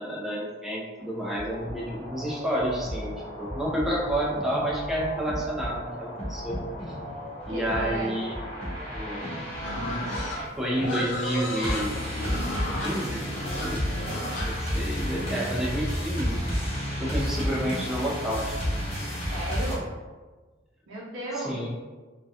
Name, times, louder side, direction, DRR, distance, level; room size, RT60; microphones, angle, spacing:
voice 1, 0.0-6.6 7.5-8.4 8.9-9.3 10.4-12.0 12.8-13.2 13.6-13.9 14.4-16.4 17.0-18.5 21.3-21.7, equal, ahead, -5 dB, 0.3 m, -30 dB
sound 1, 1.0-19.8, equal, 30° left, 0.7 m, -32 dB
voice 2, 7.5-8.1 9.2-9.4 19.3-19.9 20.9-21.6, right 1 dB, 80° right, -5 dB, 0.6 m, -34 dB
Livestock farm animals working animals, 9.6-15.6, left 1 dB, 70° left, 0.6 m, -34 dB
2.3 x 2.1 x 2.7 m, 1.3 s
head